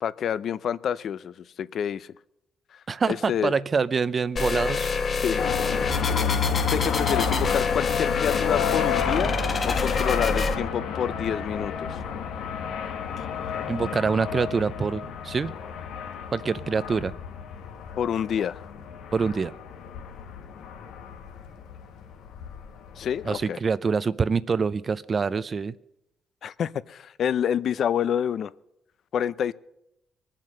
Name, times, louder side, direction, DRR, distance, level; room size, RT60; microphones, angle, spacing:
voice 1, 0.0-2.1 3.1-3.5 4.7-4.9 5.2-5.5 6.7-9.4 9.6-12.0 13.2-13.3 18.0-18.6 23.0-23.6 26.4-28.5 29.1-29.5, left 8 dB, 65° left, 17 dB, 0.5 m, -28 dB
voice 2, 2.9-4.9 13.7-15.5 16.3-17.1 19.1-19.5 23.2-25.7, right 5 dB, 40° right, 15 dB, 0.5 m, -25 dB
sound 1, 4.4-10.5, left 4 dB, 40° left, 1.5 m, -26 dB
sound 2, 5.4-23.4, left 7 dB, 85° left, 1.2 m, -32 dB
22.0 x 7.5 x 6.6 m, 0.83 s
cardioid pair, 90°, 0 cm